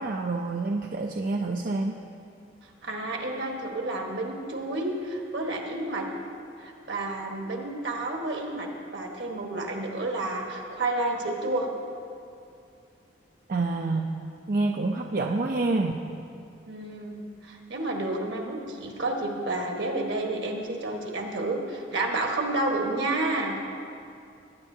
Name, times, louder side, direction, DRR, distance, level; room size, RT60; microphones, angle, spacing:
voice 1, 0.0-2.0 13.5-14.1 14.5-16.0, right 3 dB, 50° right, 1 dB, 0.5 m, -27 dB
voice 2, 2.8-6.1 6.6-8.7 8.9-11.7 16.7-23.6, right 2 dB, 70° right, 1 dB, 1.4 m, -30 dB
19.0 x 9.6 x 2.7 m, 2.5 s
head